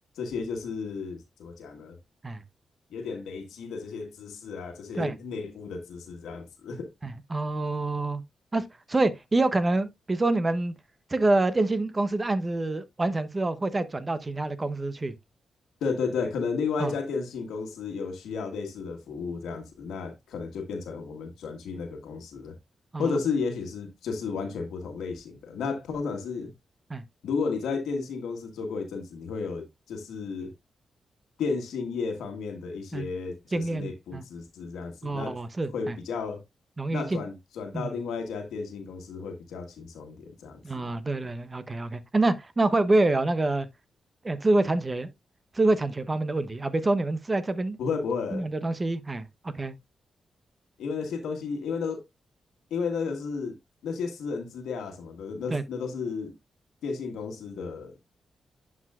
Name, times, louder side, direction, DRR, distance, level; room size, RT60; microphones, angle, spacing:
voice 1, 0.1-2.0 2.9-6.9 15.8-22.5 23.0-26.5 27.2-30.5 31.4-35.4 35.7-36.4 36.9-40.6 47.8-48.5 50.8-52.0 52.7-53.6 53.8-56.3 56.8-58.0, left 5 dB, 85° left, 1.5 m, -33 dB
voice 2, 7.0-8.2 8.5-10.7 11.1-15.1 16.8-16.9 22.9-23.1 26.9-27.0 32.9-33.0 33.5-34.2 35.0-36.0 36.8-37.2 37.7-38.0 40.6-43.7 44.2-45.1 45.5-47.8 48.3-49.7 55.5-55.6, right 2 dB, 30° right, 0.9 m, -26 dB
10.5 x 4.9 x 2.4 m
supercardioid pair, 50°, 0 cm